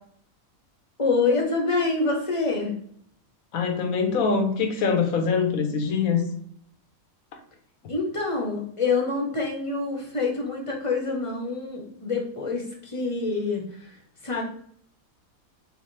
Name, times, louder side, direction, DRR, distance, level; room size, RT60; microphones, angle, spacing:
voice 1, 1.0-2.7 7.9-13.8 14.2-14.4, left 3 dB, 25° left, 0 dB, 1.0 m, -26 dB
voice 2, 3.5-6.2, left 5 dB, 75° left, 5 dB, 1.2 m, -23 dB
6.3 x 2.5 x 3.3 m, 0.64 s
omnidirectional pair, 1.5 m